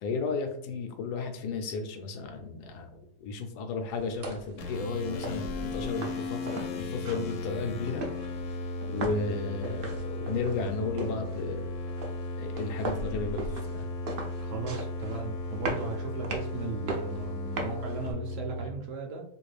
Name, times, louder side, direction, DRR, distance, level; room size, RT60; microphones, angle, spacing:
voice 1, 0.0-8.0 8.9-11.7 12.4-13.9, left 4 dB, 90° left, 5 dB, 1.2 m, -34 dB
sound 1, 3.9-18.1, right 2 dB, 85° right, 0.5 m, -40 dB
sound 2, 4.6-18.7, left 2 dB, 65° left, 0.9 m, -36 dB
voice 2, 14.4-19.2, right 5 dB, 65° right, 1 dB, 0.8 m, -37 dB
2.9 x 2.5 x 3.2 m, 0.69 s
omnidirectional pair, 1.7 m